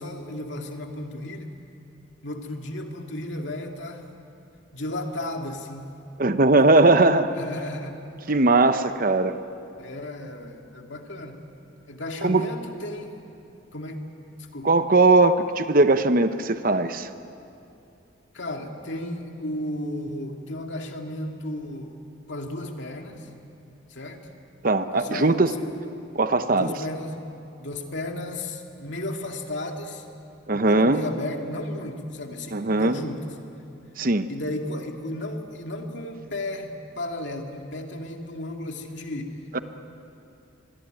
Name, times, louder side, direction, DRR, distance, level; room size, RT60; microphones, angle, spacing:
voice 1, 0.0-1.6 2.2-4.1 4.7-5.9 6.6-6.7 7.3-8.0 9.8-11.4 11.9-13.2 13.7-14.0 14.5-14.7 18.3-22.0 22.3-23.3 23.9-24.3 24.9-25.7 26.5-27.2 27.6-30.0 30.5-33.3 34.3-39.4, left 1 dB, 65° left, 3 dB, 2.4 m, -34 dB
voice 2, 6.2-7.3 8.3-9.4 12.2-12.5 14.6-17.1 24.6-25.5 26.1-26.7 30.5-31.0 32.5-33.0 34.0-34.3 39.5-39.6, right 2 dB, 45° right, 10 dB, 0.9 m, -19 dB
24.5 x 22.0 x 9.1 m, 2.7 s
head